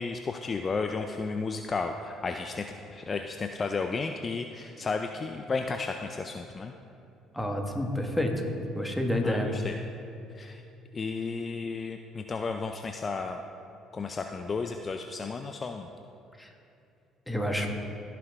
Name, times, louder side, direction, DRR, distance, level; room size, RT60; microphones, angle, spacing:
voice 1, 0.0-6.7 9.2-9.8 10.3-10.6 10.9-13.4 13.9-15.9, left 4 dB, 35° left, 5 dB, 0.5 m, -33 dB
voice 2, 7.3-8.3 8.7-9.5 17.3-17.7, left 1 dB, 5° left, 2 dB, 1.6 m, -28 dB
16.5 x 5.9 x 3.6 m, 2.7 s
hypercardioid pair, 65°, 0 cm